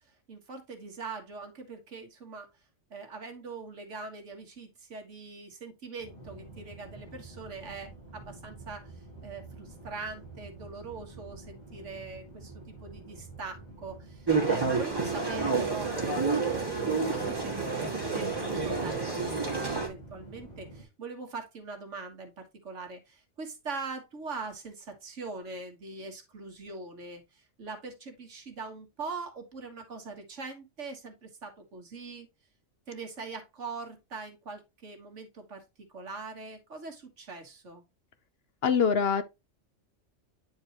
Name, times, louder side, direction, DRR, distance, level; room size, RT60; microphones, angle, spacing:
voice 1, 0.3-2.5 2.9-32.3 32.9-35.6 35.9-37.8, right 4 dB, 75° right, 1.9 m, -42 dB
sound 1, 6.0-20.8, right 2 dB, 35° left, 3.0 m, -48 dB
sound 2, 14.3-19.9, right 4 dB, 20° right, 2.0 m, -29 dB
voice 2, 38.6-39.2, left 6 dB, 60° left, 0.9 m, -24 dB
9.6 x 4.6 x 2.9 m
omnidirectional pair, 1.3 m